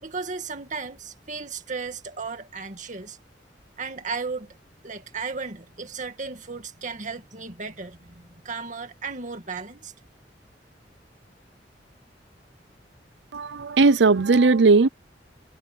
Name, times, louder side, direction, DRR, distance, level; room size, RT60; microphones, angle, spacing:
voice 1, 0.0-3.2 3.8-4.6 4.8-9.9, right 4 dB, 45° right, 2.2 m, -35 dB
voice 2, 13.3-14.9, right 3 dB, 85° right, 0.6 m, -17 dB
head